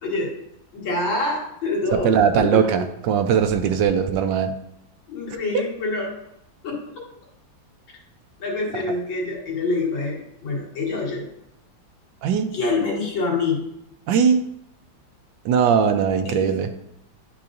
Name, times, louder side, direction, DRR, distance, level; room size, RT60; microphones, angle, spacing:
voice 1, 0.0-0.3 0.7-2.1 2.4-2.5 5.1-6.1 6.6-7.0 8.4-11.3 12.5-13.6 16.3-16.5, left 3 dB, 75° left, -3 dB, 2.4 m, -26 dB
voice 2, 2.0-4.5 5.5-5.6 8.7-8.8 12.2-12.5 14.1-14.4 15.4-16.7, right 7 dB, 75° right, 8 dB, 1.2 m, -20 dB
10.0 x 4.7 x 2.5 m, 0.81 s
omnidirectional pair, 2.1 m